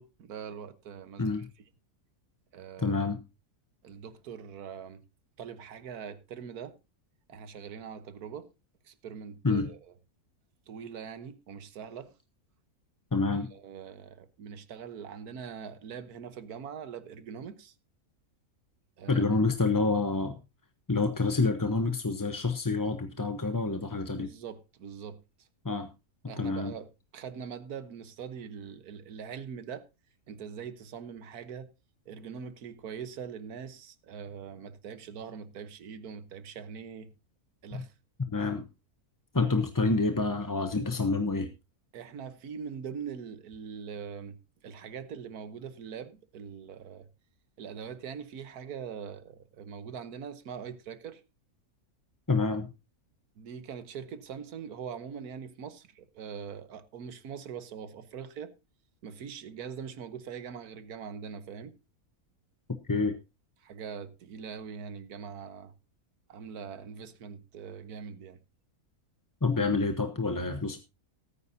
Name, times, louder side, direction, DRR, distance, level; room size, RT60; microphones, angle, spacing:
voice 1, 0.0-1.5 2.5-3.0 3.8-5.0 5.4-6.8 7.3-8.5 8.8-9.9 10.7-12.1 13.5-17.7 19.0-19.2 24.2-25.5 26.3-29.9 30.3-31.7 32.1-37.1 37.6-37.9 41.9-44.4 44.6-47.1 47.6-51.2 53.4-58.5 59.0-61.7 63.6-65.7 66.3-68.4, right 7 dB, 90° right, 1.5 m, -42 dB
voice 2, 2.8-3.2 9.4-9.7 13.1-13.5 19.1-20.4 20.9-24.3 25.6-25.9 26.4-26.7 37.7-37.8 38.3-38.6 39.3-41.5 52.3-52.7 62.9-63.1 69.4-70.8, left 3 dB, 20° left, 0.7 m, -28 dB
18.0 x 9.6 x 2.7 m
omnidirectional pair, 1.6 m